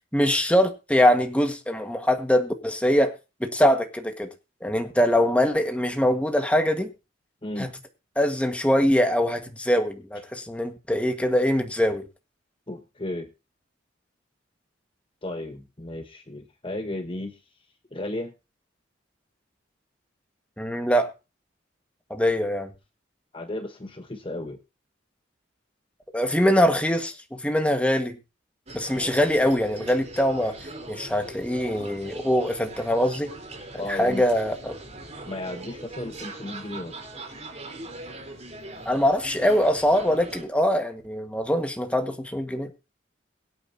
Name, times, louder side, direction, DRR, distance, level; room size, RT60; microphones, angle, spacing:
voice 1, 0.1-3.1 3.4-4.3 4.6-6.9 7.6-7.7 8.1-12.0 20.6-21.1 22.1-22.7 26.1-28.2 28.7-33.3 33.8-34.8 38.8-42.7, equal, 5° left, 5 dB, 1.7 m, -23 dB
voice 2, 7.4-7.7 12.7-13.3 15.2-17.4 17.9-18.3 23.3-24.6 33.8-34.2 35.2-36.9, left 1 dB, 30° left, 6 dB, 1.2 m, -34 dB
sound 1, 28.7-40.4, right 2 dB, 35° right, 4.0 m, -41 dB
23.0 x 8.8 x 2.9 m, 0.29 s
head